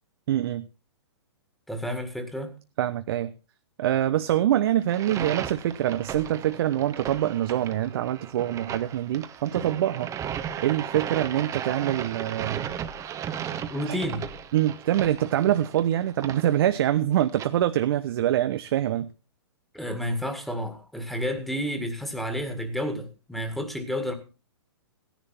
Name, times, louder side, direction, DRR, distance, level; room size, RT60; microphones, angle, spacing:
voice 1, 0.3-0.7 2.8-3.3 3.8-12.7 13.8-14.0 14.5-19.1, right 12 dB, 55° right, 0.7 m, -25 dB
voice 2, 1.7-2.5 13.7-14.3 15.5-15.6 19.7-24.1, equal, ahead, 2.0 m, -30 dB
sound 1, 4.8-17.5, right 9 dB, 20° right, 1.0 m, -36 dB
15.5 x 10.5 x 4.3 m
hypercardioid pair, 120°, 14 cm